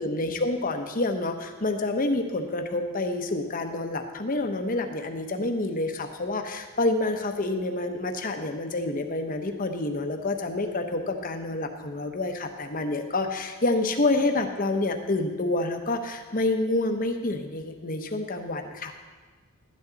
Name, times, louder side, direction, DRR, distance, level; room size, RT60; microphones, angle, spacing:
voice 1, 0.0-18.9, left 2 dB, 40° left, 5 dB, 0.9 m, -28 dB
12.0 x 11.0 x 4.0 m, 1.4 s
head